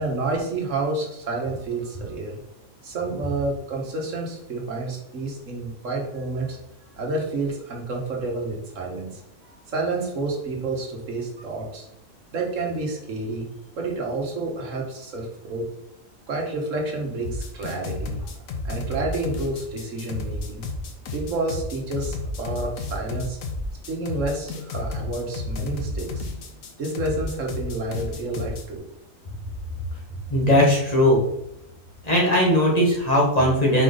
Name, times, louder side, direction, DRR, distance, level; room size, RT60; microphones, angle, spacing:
voice 1, 0.0-2.4 2.8-6.6 7.0-9.2 9.7-11.9 12.3-13.5 13.7-15.7 16.3-18.3 18.6-20.6 21.1-23.4 23.8-26.3 26.8-28.8, right 2 dB, 70° right, 0 dB, 1.5 m, -29 dB
sound 1, 17.2-28.6, left 2 dB, 80° left, 1.2 m, -32 dB
voice 2, 30.3-31.2 32.0-33.8, equal, 30° left, -4 dB, 1.6 m, -18 dB
5.0 x 4.9 x 3.9 m, 0.81 s
omnidirectional pair, 1.4 m